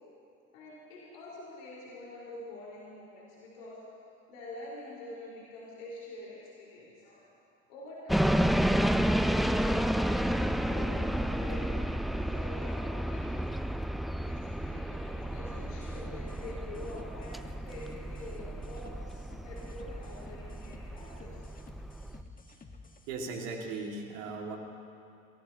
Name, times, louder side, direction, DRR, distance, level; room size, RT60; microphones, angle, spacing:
voice 1, 0.5-3.8 4.3-7.3 7.7-8.3 10.7-11.7 12.2-13.4 14.2-19.2 19.4-21.5 22.0-22.1, left 2 dB, 75° left, -6 dB, 4.4 m, -46 dB
sound 1, 8.1-22.2, equal, ahead, 0.3 m, -31 dB
sound 2, 15.6-23.1, left 3 dB, 20° left, 1.4 m, -51 dB
voice 2, 23.1-24.6, right 3 dB, 70° right, 2 dB, 2.1 m, -37 dB
23.0 x 18.5 x 2.8 m, 2.5 s
hypercardioid pair, 60°, 40 cm